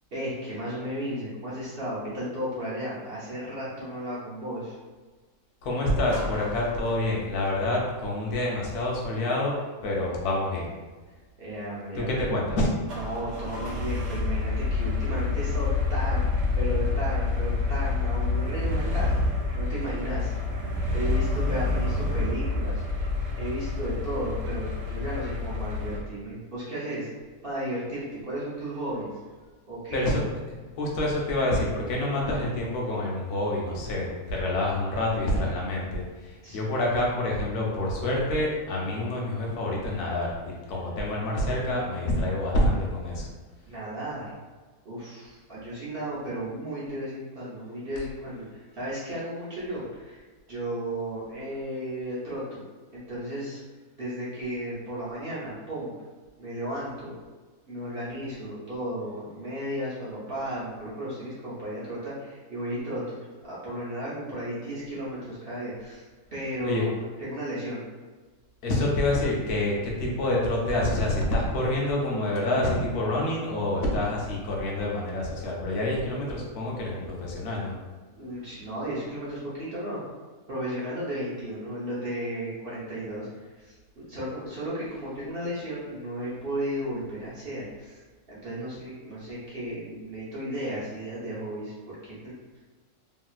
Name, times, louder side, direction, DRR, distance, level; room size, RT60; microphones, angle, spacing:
voice 1, 0.1-4.8 11.4-12.3 12.8-19.2 19.5-20.3 20.9-23.1 23.4-27.1 27.4-29.1 29.7-30.1 36.4-36.6 43.7-44.3 44.8-50.2 50.5-52.6 52.9-53.6 54.0-55.9 56.4-57.2 57.7-66.1 66.3-67.8 78.2-80.0 80.5-83.3 83.6-88.0 88.3-92.3, right 1 dB, 45° right, -9 dB, 0.8 m, -34 dB
voice 2, 5.6-9.6 9.8-10.7 12.0-12.7 29.9-30.2 30.8-43.3 66.6-66.8 68.6-77.7, left 1 dB, 80° left, -2 dB, 1.2 m, -27 dB
sound 1, 6.1-7.4 12.9-26.0, left 3 dB, 85° right, 1.3 m, -28 dB
3.1 x 2.7 x 2.3 m, 1.3 s
omnidirectional pair, 1.6 m